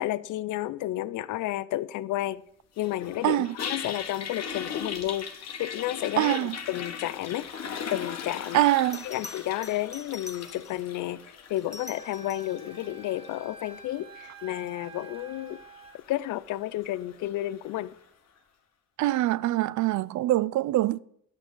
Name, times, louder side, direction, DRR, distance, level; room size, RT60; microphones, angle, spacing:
voice 1, 0.0-2.4 2.8-5.3 5.6-7.5 7.9-8.6 9.0-11.2 11.5-15.6 15.9-17.9, left 14 dB, 80° left, 0.5 m, -31 dB
Toilet flush, 2.8-18.0, left 6 dB, 60° left, 1.5 m, -40 dB
voice 2, 3.2-3.5 6.2-6.6 8.5-9.1 19.0-21.0, right 15 dB, 70° right, 0.5 m, -24 dB
Bell, 8.9-10.9 11.6-12.6 15.3-15.6, left 3 dB, 10° left, 0.4 m, -45 dB
Wind instrument woodwind instrument, 11.7-16.0, right 4 dB, 20° right, 1.6 m, -48 dB
10.5 x 6.2 x 5.5 m
cardioid pair, 90°, 30 cm